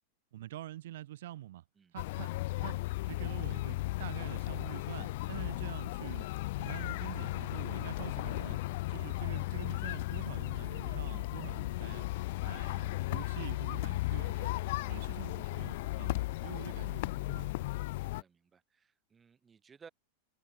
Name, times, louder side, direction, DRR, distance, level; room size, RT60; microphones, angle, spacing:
voice 1, 0.3-1.6 1.9-2.3 2.6-2.8 3.0-6.3 6.6-8.6 8.9-12.1 12.4-14.5 14.8-17.5, right 14 dB, 55° right, 1.3 m, -46 dB
sound 1, 2.0-18.2, left 19 dB, 50° left, 0.6 m, -35 dB
voice 2, 18.0-19.9, right 6 dB, 20° right, 4.7 m, -59 dB
figure-of-eight pair, 90°, 0 cm